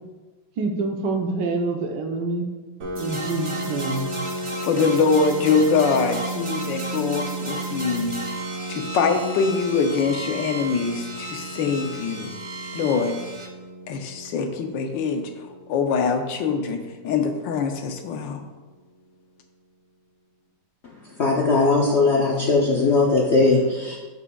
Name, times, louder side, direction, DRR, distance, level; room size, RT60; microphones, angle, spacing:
voice 1, 0.6-2.5 3.0-4.2, right 3 dB, 70° right, 3 dB, 1.4 m, -26 dB
Piano, 2.8-18.2, right 2 dB, 50° right, 1.2 m, -35 dB
sound 1, 3.0-13.5, right 1 dB, 35° right, 0.5 m, -35 dB
voice 2, 4.6-8.4 8.7-12.3 12.7-13.2 13.9-15.3 15.7-18.4, left 5 dB, 80° left, 5 dB, 1.4 m, -23 dB
voice 3, 21.2-24.0, left 3 dB, 60° left, -2 dB, 0.7 m, -19 dB
12.0 x 4.9 x 2.3 m, 1.2 s
omnidirectional pair, 2.0 m